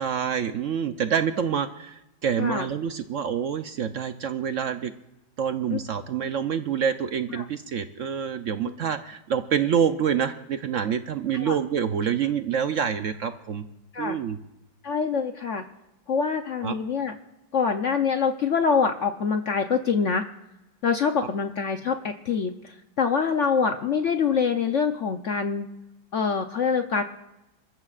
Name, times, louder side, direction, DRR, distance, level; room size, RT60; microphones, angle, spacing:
voice 1, 0.0-4.9 5.4-13.7 14.0-14.4 16.6-16.7, right 8 dB, 70° right, 9 dB, 0.7 m, -27 dB
voice 2, 14.8-15.6 16.1-17.2 17.5-20.2 20.8-25.7 26.1-27.0, left 5 dB, 60° left, 6 dB, 0.8 m, -25 dB
27.5 x 14.0 x 2.5 m, 0.94 s
omnidirectional pair, 2.1 m